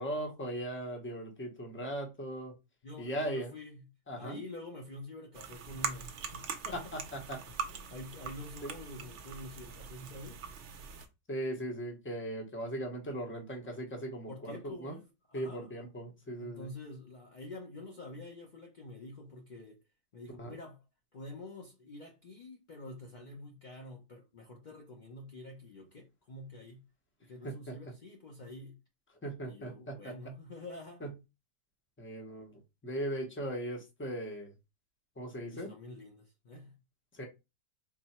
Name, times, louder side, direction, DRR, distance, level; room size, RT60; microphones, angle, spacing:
voice 1, 0.0-2.5 3.0-3.5 4.1-4.4 6.7-7.4 8.6-8.7 11.3-15.0 15.3-16.7 20.4-20.6 27.4-27.8 29.2-30.1 31.0-31.1 32.0-34.5 35.2-35.7 37.1-37.2, right 1 dB, 10° left, 0.5 m, -38 dB
voice 2, 2.8-3.9 4.2-6.8 7.5-10.4 14.3-15.9 16.4-19.8 20.1-20.8 21.1-26.9 27.2-28.8 29.4-31.0 35.5-36.8, left 2 dB, 70° left, 0.4 m, -47 dB
sound 1, 5.3-11.1, right 6 dB, 65° right, 0.7 m, -42 dB
4.1 x 2.0 x 4.1 m
omnidirectional pair, 1.7 m